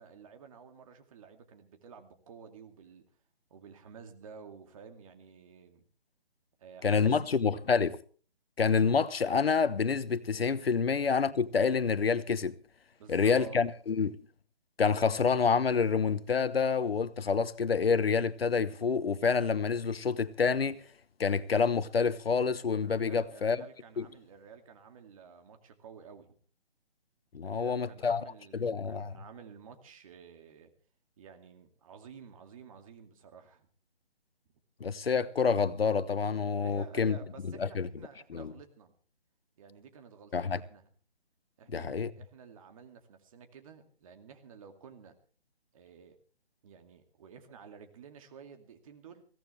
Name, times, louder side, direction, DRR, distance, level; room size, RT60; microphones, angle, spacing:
voice 1, 0.0-3.0 3.5-5.9 6.6-7.4 13.0-13.6 22.8-26.4 27.4-30.7 31.2-33.7 36.6-38.9 39.6-40.9 41.6-45.1 45.7-46.2 46.6-49.2, right 6 dB, 35° right, 2.4 m, -52 dB
voice 2, 6.8-8.0 8.6-12.5 13.1-14.2 14.8-20.8 21.2-23.6 24.0-24.1 27.3-28.2 28.5-29.1 34.8-37.2 37.6-37.9 38.3-38.5 40.3-40.6 41.7-42.1, left 5 dB, 70° left, 1.1 m, -28 dB
22.0 x 17.0 x 3.3 m
figure-of-eight pair, 155°, 31 cm